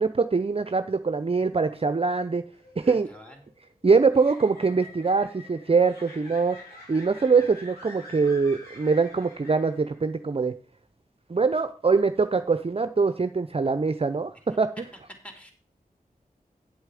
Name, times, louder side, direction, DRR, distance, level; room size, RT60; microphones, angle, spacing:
voice 1, 0.0-2.4 2.8-3.1 3.8-6.6 6.9-10.5 11.3-14.7, right 4 dB, 35° right, 10 dB, 0.6 m, -23 dB
sound 1, 2.5-10.1, left 2 dB, 90° left, 5.2 m, -47 dB
voice 2, 2.8-3.5 15.2-15.5, equal, 10° left, 3 dB, 3.2 m, -47 dB
8.2 x 8.0 x 5.0 m, 0.39 s
cardioid pair, 40°, 16 cm